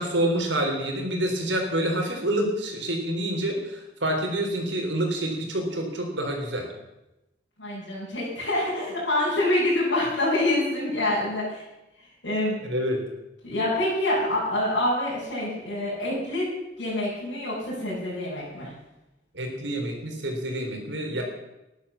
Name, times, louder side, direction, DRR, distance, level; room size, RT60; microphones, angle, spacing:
voice 1, 0.0-6.6 12.7-13.0 19.3-21.2, right 1 dB, 75° right, 2 dB, 3.8 m, -27 dB
voice 2, 7.6-11.6 12.2-12.6 13.4-16.5 16.8-18.7, left 1 dB, 80° left, -11 dB, 7.2 m, -26 dB
13.0 x 11.5 x 7.1 m, 0.95 s
head